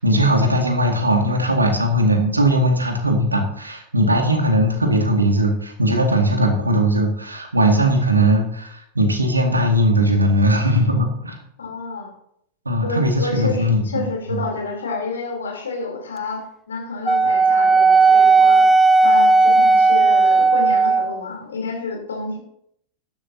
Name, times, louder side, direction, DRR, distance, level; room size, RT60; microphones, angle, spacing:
voice 1, 0.0-11.4 12.7-14.5, right 1 dB, 80° right, 3 dB, 2.1 m, -19 dB
voice 2, 11.6-12.1 12.8-18.7 19.0-22.4, left 4 dB, 70° left, 1 dB, 3.4 m, -29 dB
Wind instrument woodwind instrument, 17.1-21.2, right 3 dB, 10° right, 0.4 m, -14 dB
13.0 x 11.0 x 2.8 m, 0.72 s
figure-of-eight pair, 90°, 0 cm